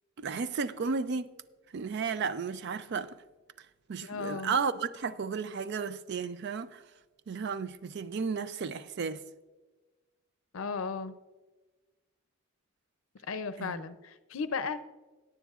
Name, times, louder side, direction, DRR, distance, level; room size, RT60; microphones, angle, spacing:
voice 1, 0.2-1.3 1.7-3.2 3.9-6.8 7.3-9.2 13.6-13.8, right 5 dB, 55° right, 0.4 m, -33 dB
voice 2, 4.0-4.6 10.5-11.2 13.3-14.8, left 5 dB, 70° left, 0.5 m, -35 dB
17.0 x 9.3 x 2.5 m
head